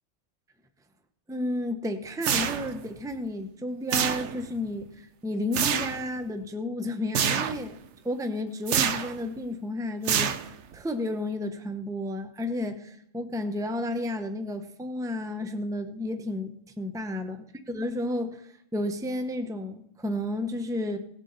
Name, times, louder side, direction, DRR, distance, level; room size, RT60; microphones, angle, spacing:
voice 1, 1.3-7.8 8.0-10.3 10.7-21.0, left 1 dB, 5° right, 7 dB, 0.7 m, -32 dB
sound 1, 2.2-2.9 3.9-4.6 5.5-6.0 7.1-7.7 8.7-9.2 10.0-10.7, right 8 dB, 65° right, 1.0 m, -27 dB
18.0 x 7.2 x 4.0 m, 0.72 s
omnidirectional pair, 1.3 m